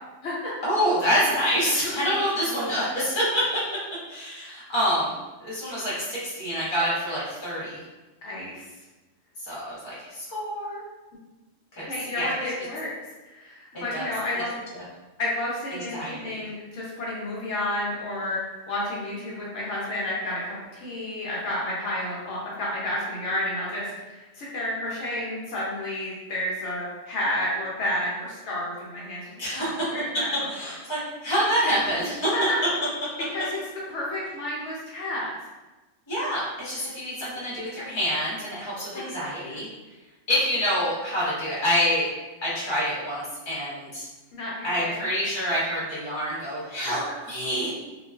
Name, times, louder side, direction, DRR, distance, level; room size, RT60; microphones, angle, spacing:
voice 1, 0.6-3.6 4.1-5.1 5.4-7.8 9.4-10.8 11.7-11.9 12.1-12.3 13.7-14.1 14.3-14.4 14.7-14.8 15.9-16.3 29.4-29.7 30.5-32.3 36.1-39.7 40.3-42.1 42.4-44.1 44.6-47.7, equal, 25° left, -8 dB, 0.8 m, -27 dB
voice 2, 8.2-8.6 11.9-12.9 13.3-14.5 15.2-18.4 18.7-30.3 30.6-30.7 32.3-32.4 33.3-33.4 33.9-35.3 39.1-39.2 44.3-45.0, left 1 dB, 75° left, -5 dB, 0.9 m, -31 dB
2.4 x 2.3 x 2.3 m, 1.1 s
omnidirectional pair, 1.3 m